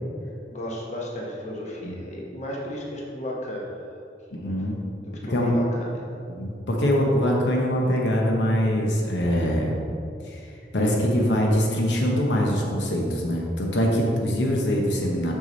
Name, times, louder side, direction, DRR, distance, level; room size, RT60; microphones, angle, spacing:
voice 1, 0.5-3.7 4.3-4.7 5.1-6.0, left 1 dB, 40° left, -3 dB, 1.1 m, -34 dB
voice 2, 4.3-4.8 5.3-5.5 6.3-9.8 10.3-10.4 10.7-15.3, equal, 85° left, -1 dB, 1.0 m, -23 dB
6.3 x 6.0 x 4.0 m, 2.5 s
head